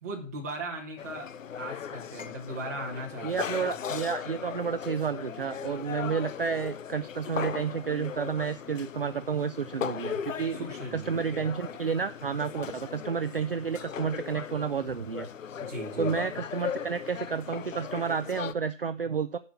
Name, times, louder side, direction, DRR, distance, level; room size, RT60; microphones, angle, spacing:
voice 1, 0.0-1.3 1.6-3.4 10.5-11.4 15.6-16.1, right 1 dB, 15° right, -1 dB, 1.3 m, -38 dB
sound 1, 1.0-18.5, left 8 dB, 80° left, 0.7 m, -38 dB
voice 2, 3.2-10.6 10.9-15.3 16.0-19.4, right 6 dB, 50° right, 10 dB, 0.4 m, -31 dB
8.9 x 5.5 x 6.9 m, 0.39 s
hypercardioid pair, 175°, 38 cm